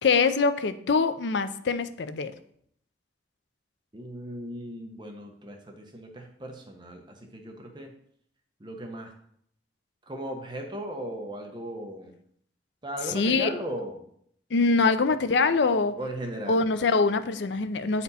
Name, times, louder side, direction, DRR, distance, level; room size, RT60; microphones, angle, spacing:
voice 1, 0.0-2.3 13.1-13.6 14.5-15.9 16.5-18.0, left 4 dB, 75° left, 11 dB, 0.5 m, -24 dB
voice 2, 3.9-7.9 8.6-9.1 10.1-12.1 12.8-14.1 16.0-16.6, right 1 dB, 25° right, 2 dB, 1.0 m, -37 dB
8.0 x 4.3 x 4.2 m, 0.67 s
head